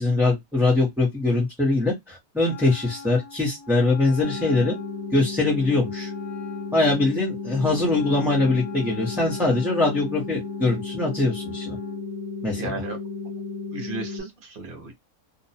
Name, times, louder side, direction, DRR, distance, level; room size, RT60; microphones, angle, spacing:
voice 1, 0.0-4.8 5.1-6.1 6.7-11.8 12.4-12.6, left 2 dB, ahead, 0.8 m, -22 dB
Wind instrument woodwind instrument, 2.4-12.0, left 6 dB, 55° left, 1.1 m, -43 dB
sound 1, 4.2-14.2, left 5 dB, 85° left, 0.3 m, -34 dB
voice 2, 12.6-13.0 13.7-14.9, right 3 dB, 45° right, 0.9 m, -34 dB
2.7 x 2.2 x 2.7 m
omnidirectional pair, 1.4 m